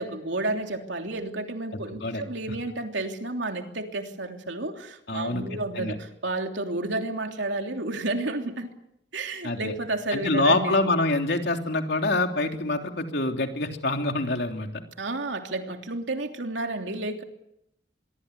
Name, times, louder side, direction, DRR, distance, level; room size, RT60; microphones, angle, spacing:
voice 1, 0.0-8.7 9.1-10.8 15.0-17.2, right 2 dB, 85° right, 4 dB, 3.2 m, -31 dB
voice 2, 5.1-5.9 9.4-9.7 10.1-14.8, left 2 dB, 65° left, 4 dB, 3.3 m, -26 dB
25.0 x 23.0 x 8.3 m, 0.79 s
head